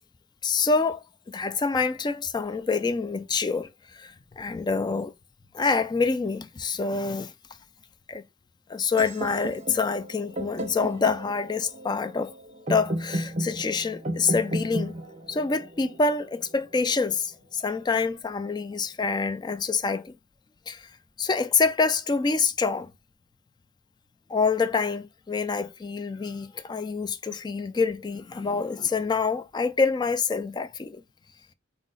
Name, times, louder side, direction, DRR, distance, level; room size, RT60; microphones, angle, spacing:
voice 1, 0.4-3.7 3.9-5.1 5.5-7.3 8.1-8.2 8.7-12.3 12.7-15.0 15.3-20.1 20.7-20.9 21.2-22.9 24.3-31.0, left 4 dB, 20° left, 0.3 m, -26 dB
sound 1, 9.0-16.9, right 1 dB, 35° right, 0.7 m, -34 dB
4.7 x 2.0 x 3.9 m
head